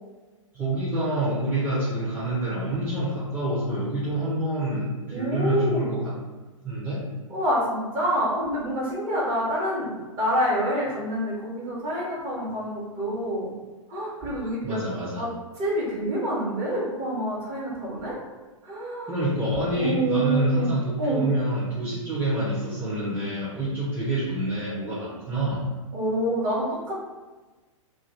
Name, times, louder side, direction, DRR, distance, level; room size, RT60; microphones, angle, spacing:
voice 1, 0.5-6.1 6.6-7.1 14.6-15.3 19.1-25.6, right 1 dB, 10° right, -10 dB, 0.7 m, -27 dB
voice 2, 5.1-5.9 7.3-13.5 13.9-14.8 15.1-15.3 15.6-18.2 18.6-19.1 19.7-20.7 21.0-21.2 25.9-27.0, right 1 dB, 30° right, -6 dB, 1.1 m, -27 dB
2.5 x 2.3 x 3.2 m, 1.2 s
figure-of-eight pair, 110°, 17 cm